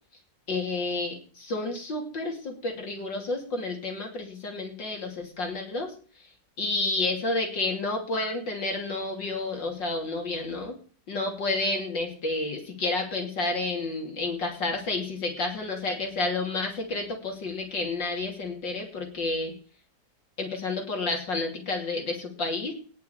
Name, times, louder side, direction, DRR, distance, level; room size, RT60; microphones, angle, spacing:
voice 1, 0.5-5.9 6.6-10.8 11.1-19.5 20.4-22.7, left 2 dB, 75° left, 2 dB, 3.7 m, -30 dB
10.0 x 8.1 x 8.0 m, 0.41 s
omnidirectional pair, 2.0 m